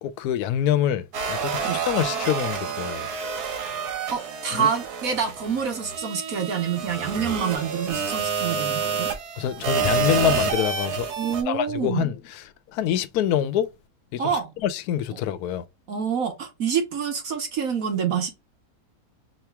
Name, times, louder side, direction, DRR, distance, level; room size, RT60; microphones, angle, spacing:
voice 1, 0.0-3.1 4.6-4.7 9.4-11.1 11.5-12.1 12.7-13.7 14.1-14.2 14.6-15.6, left 10 dB, 75° left, 1.0 m, -25 dB
sound 1, 1.1-11.4, right 6 dB, 75° right, 1.5 m, -28 dB
voice 2, 4.1-9.1 11.2-12.1 14.2-14.5 15.9-18.3, right 7 dB, 60° right, 1.4 m, -27 dB
4.8 x 3.0 x 3.3 m
omnidirectional pair, 1.7 m